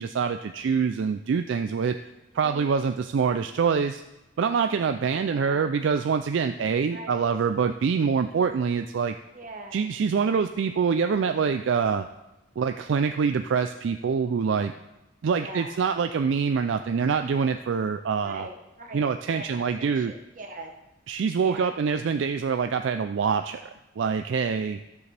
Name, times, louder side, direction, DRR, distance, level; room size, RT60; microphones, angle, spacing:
voice 1, 0.0-2.0 2.3-4.0 4.4-9.1 9.7-12.1 12.6-14.7 15.2-18.5 18.9-20.1 21.1-23.7 24.0-24.8, right 6 dB, 65° right, 8 dB, 0.3 m, -25 dB
voice 2, 2.3-2.8 5.2-5.7 6.9-7.4 9.3-9.9 15.4-15.8 18.2-20.8 21.4-21.7, right 2 dB, 40° right, 2 dB, 1.2 m, -42 dB
13.5 x 6.9 x 3.3 m, 0.96 s
head